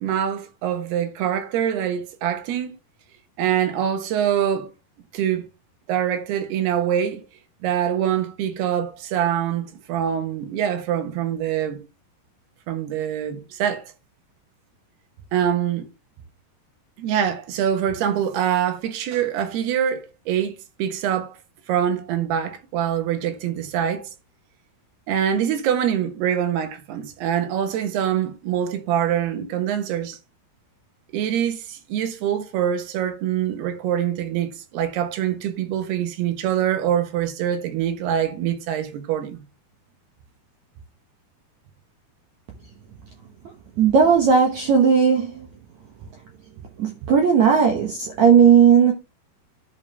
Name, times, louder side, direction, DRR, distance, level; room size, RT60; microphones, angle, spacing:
voice 1, 0.0-2.8 3.4-4.7 5.1-5.5 5.9-7.2 7.6-11.8 12.7-13.9 15.3-15.9 17.0-21.4 21.7-24.1 25.1-30.2 31.1-39.4, right 9 dB, 85° right, 3.2 m, -24 dB
voice 2, 43.8-45.5 46.8-48.9, right 7 dB, 65° right, 2.0 m, -16 dB
10.5 x 5.5 x 3.3 m
omnidirectional pair, 4.5 m